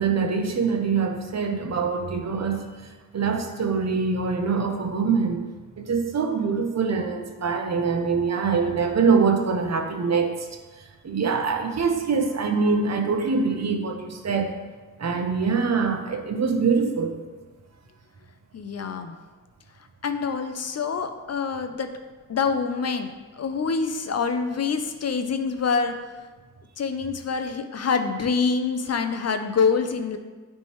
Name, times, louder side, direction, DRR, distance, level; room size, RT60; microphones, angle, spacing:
voice 1, 0.0-2.7 3.1-5.5 5.8-10.5 11.0-14.5 15.0-17.2, right 5 dB, 50° right, 3 dB, 0.8 m, -24 dB
voice 2, 18.5-19.1 20.0-21.9 22.3-23.1 23.4-25.9 26.8-30.2, left 5 dB, 45° left, 8 dB, 0.6 m, -26 dB
9.1 x 3.4 x 3.1 m, 1.3 s
cardioid pair, 60°, 35 cm